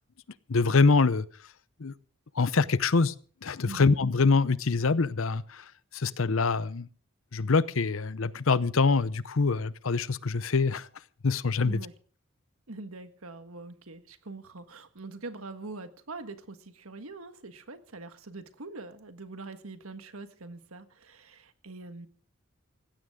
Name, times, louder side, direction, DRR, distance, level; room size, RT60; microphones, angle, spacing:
voice 1, 0.5-1.2 1.8-1.9 2.4-3.1 3.4-5.6 5.9-6.9 7.3-10.9 11.2-11.8, left 4 dB, 75° left, 0.7 m, -24 dB
voice 2, 11.6-11.9 12.7-22.1, right 3 dB, 90° right, 1.6 m, -43 dB
19.0 x 16.5 x 3.7 m
head